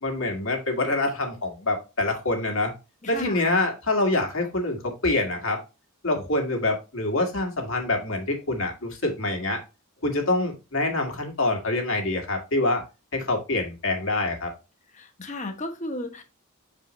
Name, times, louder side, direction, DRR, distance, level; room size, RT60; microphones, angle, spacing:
voice 1, 0.0-2.7 3.1-5.6 6.0-9.6 10.0-12.8 13.1-14.5, left 2 dB, 70° left, 2.1 m, -26 dB
voice 2, 3.0-3.5 14.9-16.2, left 2 dB, 35° left, 1.1 m, -34 dB
6.4 x 4.9 x 3.1 m
head